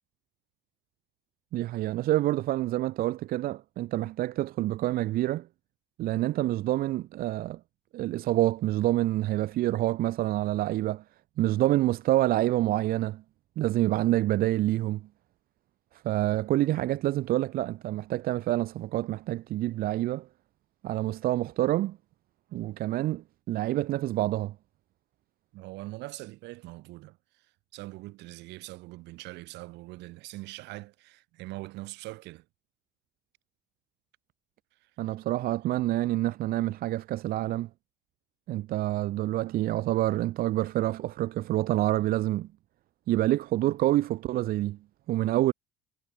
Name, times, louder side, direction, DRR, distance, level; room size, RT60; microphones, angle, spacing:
voice 1, 1.5-5.5 6.0-7.6 7.9-11.0 11.4-13.2 13.6-15.1 16.0-20.3 20.8-22.0 22.5-24.5 35.0-37.7 38.5-42.5 43.1-44.8 45.1-45.5, right 15 dB, 55° right, 0.5 m, -27 dB
voice 2, 25.5-27.2 27.7-32.4, right 20 dB, 75° right, 4.7 m, -42 dB
supercardioid pair, 95°, 18 cm